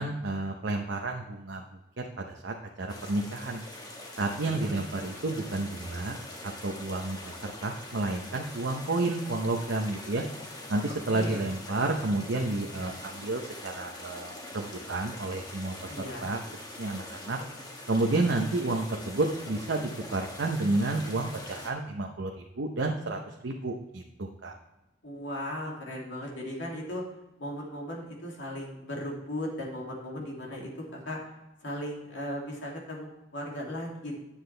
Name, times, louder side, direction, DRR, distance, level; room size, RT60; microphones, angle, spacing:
voice 1, 0.0-1.6 2.0-3.6 4.2-6.2 6.4-10.2 10.7-15.9 16.2-16.4 16.8-17.4 17.9-24.5, right 2 dB, 80° right, 1 dB, 0.8 m, -31 dB
sound 1, 2.9-21.7, left 1 dB, 25° left, 1.4 m, -43 dB
voice 2, 10.9-11.4 15.9-16.3 25.0-27.0 27.4-31.2 31.6-34.2, left 1 dB, 90° left, -2 dB, 2.6 m, -37 dB
9.9 x 7.3 x 3.3 m, 0.97 s
head